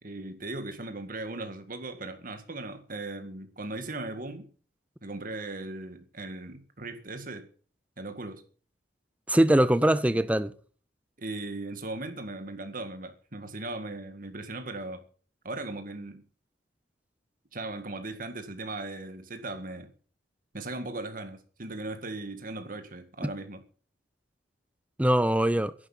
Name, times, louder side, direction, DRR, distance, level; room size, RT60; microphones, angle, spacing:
voice 1, 0.0-4.5 5.0-7.5 8.0-8.4 11.2-15.0 15.4-16.2 17.5-19.9 20.5-23.6, right 2 dB, 50° right, 1.9 m, -38 dB
voice 2, 9.3-10.5 23.2-23.3 25.0-25.7, right 1 dB, 10° right, 0.6 m, -22 dB
11.0 x 9.7 x 9.0 m
head